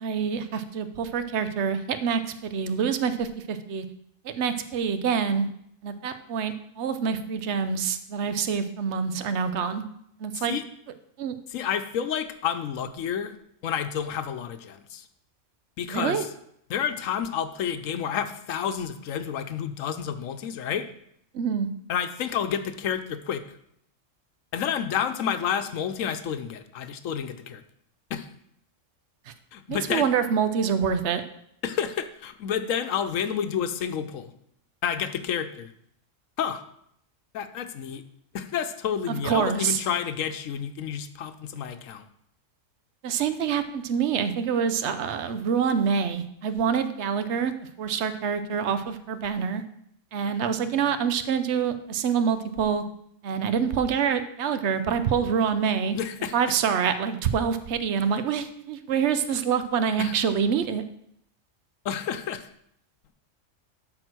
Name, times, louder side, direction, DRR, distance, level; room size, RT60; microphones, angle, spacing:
voice 1, 0.0-3.8 4.2-5.5 5.8-9.8 10.2-10.5 11.2-11.3 15.9-16.3 21.3-21.7 29.3-29.4 29.7-31.2 39.1-39.8 43.0-49.6 50.1-52.8 53.2-56.0 56.3-60.8, right 7 dB, 65° right, 11 dB, 1.0 m, -26 dB
voice 2, 10.3-10.6 11.5-13.3 13.6-15.1 15.8-16.3 16.7-20.9 21.9-23.6 24.5-27.6 28.1-28.3 29.5-30.1 31.6-34.3 34.8-35.7 36.4-36.6 37.3-38.0 38.3-42.1 55.9-56.5 60.0-60.1 61.8-62.5, left 8 dB, 85° left, 10 dB, 1.1 m, -30 dB
12.5 x 4.3 x 6.1 m, 0.73 s
omnidirectional pair, 1.3 m